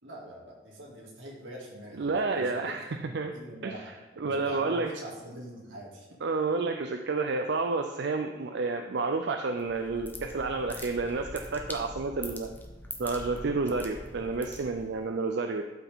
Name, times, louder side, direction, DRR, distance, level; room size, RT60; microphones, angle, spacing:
voice 1, 0.0-2.1 2.3-3.9 4.2-6.1, right 1 dB, 85° right, -2 dB, 2.5 m, -44 dB
voice 2, 2.0-3.3 3.6-4.9 6.2-12.5 13.0-15.6, right 3 dB, 60° right, 5 dB, 0.5 m, -30 dB
sound 1, 9.6-15.0, left 1 dB, 10° left, 0.8 m, -43 dB
12.0 x 5.9 x 3.7 m, 1.2 s
head